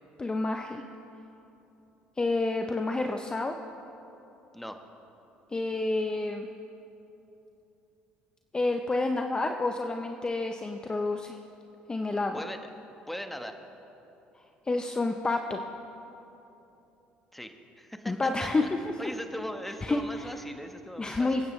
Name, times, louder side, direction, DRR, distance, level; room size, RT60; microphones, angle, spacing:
voice 1, 0.2-0.8 2.2-3.5 5.5-6.5 8.5-11.4 11.9-12.4 14.7-15.6 18.1-18.7 19.8-20.3 21.0-21.5, left 2 dB, 20° left, 5 dB, 0.7 m, -29 dB
voice 2, 13.1-13.6 17.3-18.1 18.4-18.7 19.0-21.3, equal, 5° left, 6 dB, 1.2 m, -39 dB
26.5 x 9.4 x 3.2 m, 3.0 s
supercardioid pair, 75°, 4 cm